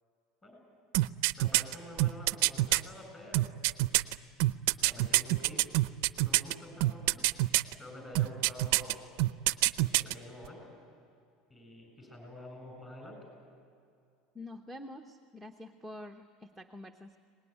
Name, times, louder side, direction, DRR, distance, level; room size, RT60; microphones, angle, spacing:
sound 1, 0.9-2.8 3.3-6.5 6.8-7.7 8.2-8.9 9.2-10.1 10.4-10.5, right 19 dB, 70° right, 0.5 m, -26 dB
voice 1, 1.4-3.5 4.8-5.7 6.2-7.2 7.8-8.9 9.7-10.7 11.5-13.2, left 1 dB, 15° left, 2 dB, 7.8 m, -48 dB
voice 2, 14.3-17.2, left 1 dB, ahead, 2 dB, 0.9 m, -47 dB
24.0 x 19.5 x 9.9 m, 2.4 s
cardioid pair, 150°, 0 cm